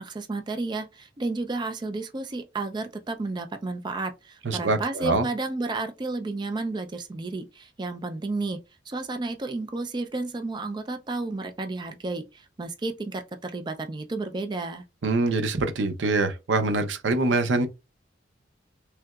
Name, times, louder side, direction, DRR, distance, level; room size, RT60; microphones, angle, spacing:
voice 1, 0.0-8.6 8.9-14.8, right 3 dB, 25° right, 0.4 m, -32 dB
voice 2, 4.4-5.3 15.0-17.7, right 3 dB, 85° right, 0.6 m, -24 dB
3.3 x 2.8 x 2.3 m
head